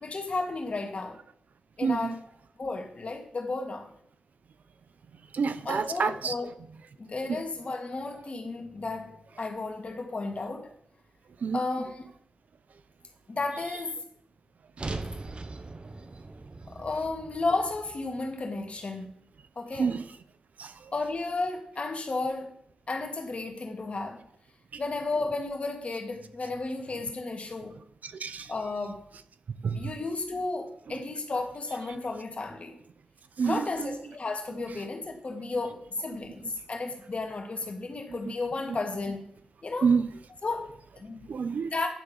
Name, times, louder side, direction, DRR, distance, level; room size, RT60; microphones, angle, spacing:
voice 1, 0.0-1.2 1.8-2.2 2.6-3.9 5.6-6.5 7.0-10.7 11.5-12.1 13.3-14.0 16.7-19.1 19.6-20.0 20.9-22.6 22.9-24.2 24.8-27.8 28.5-29.1 29.7-32.8 33.4-39.2 39.6-39.9 40.4-41.3 41.7-41.9, left 3 dB, 50° left, 1.9 m, -33 dB
voice 2, 1.8-2.1 5.3-6.3 7.3-7.4 11.4-11.6 19.8-20.0 20.6-20.7 24.7-24.8 28.0-28.5 29.6-29.9 33.4-33.6 39.8-40.1 41.3-41.7, right 5 dB, 70° right, 0.6 m, -27 dB
sound 1, 14.8-19.0, right 3 dB, 40° right, 0.8 m, -40 dB
10.5 x 3.7 x 6.5 m
cardioid pair, 60°, 3 cm